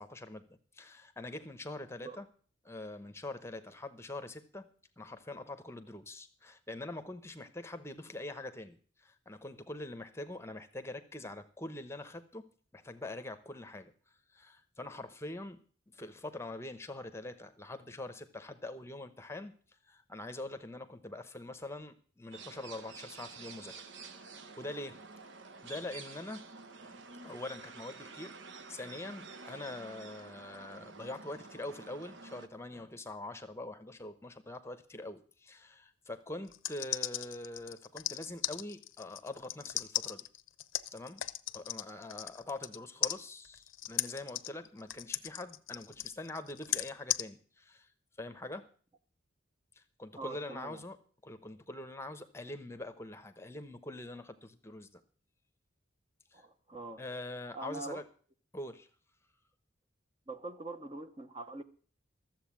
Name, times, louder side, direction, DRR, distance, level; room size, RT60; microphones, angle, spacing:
voice 1, 0.0-2.3 2.6-4.7 5.0-13.9 14.3-15.6 15.9-19.5 19.8-24.3 24.6-25.0 25.6-26.4 26.8-28.3 28.7-40.3 40.9-41.2 41.5-47.9 48.2-48.7 49.8-51.0 51.2-55.0 56.3-56.4 57.0-58.0 58.5-58.9, left 2 dB, 15° left, 10 dB, 0.9 m, -44 dB
sound 1, 22.3-32.5, right 4 dB, 65° right, 1.0 m, -50 dB
sound 2, 36.5-42.8 43.0-47.2, left 13 dB, 80° left, 0.7 m, -36 dB
voice 2, 50.2-50.8 56.3-57.0 57.5-58.0 60.3-61.6, right 3 dB, 25° right, 8 dB, 0.8 m, -43 dB
13.5 x 7.7 x 7.4 m, 0.44 s
head